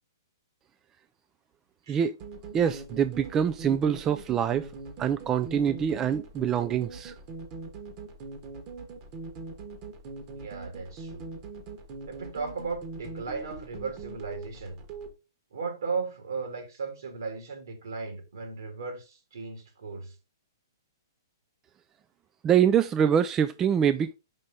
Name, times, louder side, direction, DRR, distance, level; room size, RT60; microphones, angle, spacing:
sound 1, 2.2-15.1, right 3 dB, 35° right, 1.4 m, -42 dB
voice 1, 2.5-4.7 5.0-7.1 22.4-24.2, right 8 dB, 20° right, 0.3 m, -25 dB
voice 2, 10.3-11.3 12.1-14.8 15.5-20.1, right 4 dB, 70° right, 2.5 m, -36 dB
5.3 x 5.2 x 3.7 m
hypercardioid pair, 125°, 2 cm